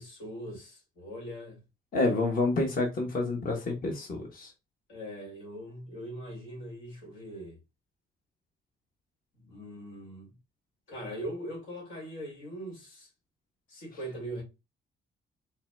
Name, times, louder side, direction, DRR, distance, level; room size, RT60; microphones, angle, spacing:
voice 1, 0.0-1.6 4.9-7.6 9.4-10.3 10.9-13.1 13.7-14.4, right 1 dB, 85° left, 2.2 m, -41 dB
voice 2, 1.9-4.5, left 2 dB, 45° left, 1.1 m, -28 dB
4.5 x 3.3 x 2.2 m
cardioid pair, 90°, 20 cm